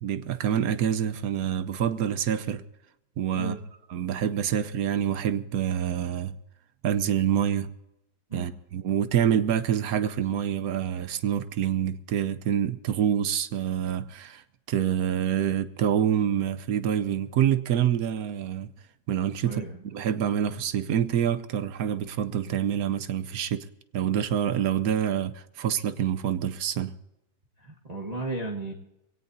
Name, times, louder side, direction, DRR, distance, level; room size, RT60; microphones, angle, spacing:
voice 1, 0.0-2.6 3.2-3.5 3.9-6.4 6.8-7.7 8.3-18.7 19.1-23.6 23.9-27.0, right 9 dB, 65° right, 1.0 m, -26 dB
voice 2, 19.4-19.8 27.6-28.7, right 2 dB, 25° right, 1.3 m, -34 dB
22.0 x 17.5 x 2.7 m
omnidirectional pair, 1.9 m